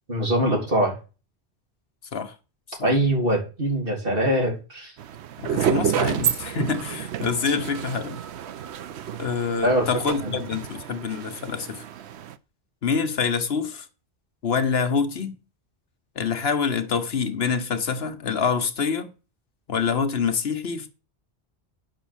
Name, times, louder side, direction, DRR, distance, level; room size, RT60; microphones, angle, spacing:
voice 1, 0.1-0.9 2.8-4.9 9.6-9.9 10.2-10.4, right 1 dB, 55° right, 3.8 m, -23 dB
sound 1, 5.0-12.3, right 9 dB, 85° right, 1.0 m, -30 dB
voice 2, 5.4-8.2 9.2-11.8 12.8-13.9 14.4-15.4 16.2-19.1 19.7-20.9, left 5 dB, 70° left, 1.3 m, -26 dB
10.0 x 6.1 x 7.2 m
omnidirectional pair, 1.1 m